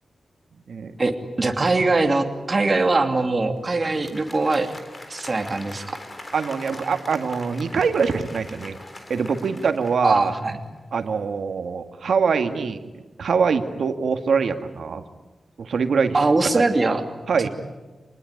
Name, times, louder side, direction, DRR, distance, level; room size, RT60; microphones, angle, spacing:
voice 1, 1.4-4.7 5.1-6.0 10.0-10.6 16.1-17.0 17.4-17.5, right 3 dB, 35° right, 5 dB, 2.8 m, -21 dB
Applause, 3.7-10.7, left 2 dB, 30° left, 4.0 m, -42 dB
voice 2, 6.3-8.8 9.1-10.3 10.9-12.8 13.2-15.0 15.6-16.2 16.5-16.6 17.3-17.5, right 5 dB, 85° right, 8 dB, 1.9 m, -23 dB
28.0 x 20.0 x 9.8 m, 1.2 s
wide cardioid pair, 110°, 0 cm